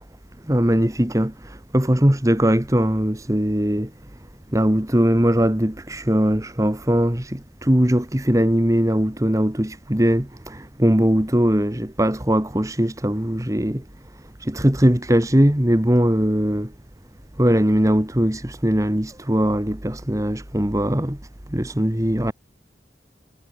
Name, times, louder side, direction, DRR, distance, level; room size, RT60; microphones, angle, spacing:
voice 1, 0.5-3.9 4.5-13.8 14.4-16.7 17.4-21.2 21.5-22.3, equal, 15° right, 1.6 m, -20 dB
head